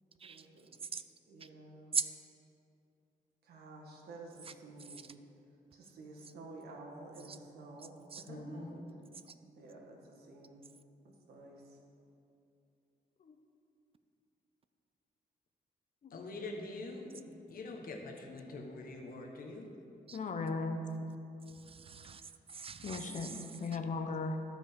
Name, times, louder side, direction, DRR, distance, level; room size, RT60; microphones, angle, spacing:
voice 1, 0.2-0.7 1.3-2.0 3.4-5.0 5.7-8.7 9.6-10.6 11.0-11.8, right 2 dB, 90° right, 0 dB, 1.4 m, -51 dB
voice 2, 8.3-8.8 16.1-19.7, left 2 dB, 65° left, 1 dB, 1.2 m, -44 dB
voice 3, 20.1-20.8 22.8-24.4, left 3 dB, 50° left, 5 dB, 0.8 m, -37 dB
voice 4, 21.5-23.8, right 6 dB, 35° right, 11 dB, 0.4 m, -40 dB
14.0 x 5.1 x 3.7 m, 2.6 s
cardioid pair, 95°, 16 cm